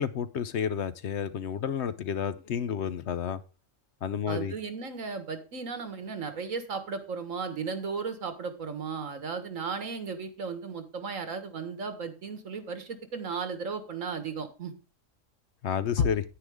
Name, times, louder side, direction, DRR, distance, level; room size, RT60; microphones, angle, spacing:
voice 1, 0.0-3.4 4.0-4.5 15.6-16.2, left 7 dB, 65° left, 0.9 m, -30 dB
voice 2, 4.3-14.7 16.0-16.1, right 5 dB, 85° right, 1.9 m, -35 dB
9.9 x 9.6 x 3.5 m
omnidirectional pair, 1.3 m